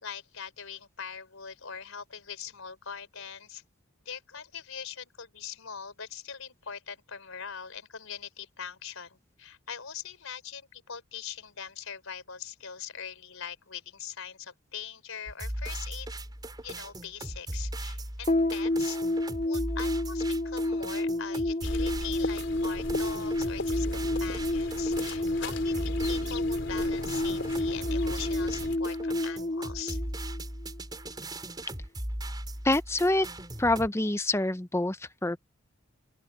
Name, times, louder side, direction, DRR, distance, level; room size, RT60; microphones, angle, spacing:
voice 1, 0.0-3.6 4.0-16.1 16.6-30.0, left 7 dB, 85° left, 4.0 m, -42 dB
sound 1, 15.3-33.9, right 1 dB, 20° right, 4.9 m, -38 dB
sound 2, 18.3-30.8, left 1 dB, 35° left, 2.2 m, -30 dB
sound 3, 21.6-28.8, left 2 dB, 60° left, 4.6 m, -39 dB
voice 2, 32.6-33.3 33.6-35.4, left 2 dB, 15° left, 0.6 m, -26 dB
open air
head